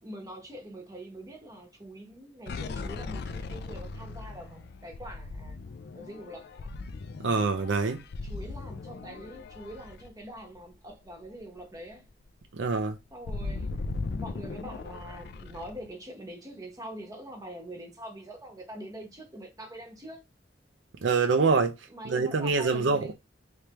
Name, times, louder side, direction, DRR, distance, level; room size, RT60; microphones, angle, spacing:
voice 1, 0.0-5.6 5.9-6.7 8.2-12.1 13.1-20.2 21.9-23.1, right 1 dB, 20° right, 1.0 m, -44 dB
sound 1, 2.5-10.9 11.3-11.4 11.7-15.9, left 3 dB, 60° left, 0.4 m, -38 dB
voice 2, 7.2-8.0 12.5-13.0 21.0-23.1, right 4 dB, 75° right, 0.5 m, -25 dB
3.3 x 3.2 x 2.9 m
head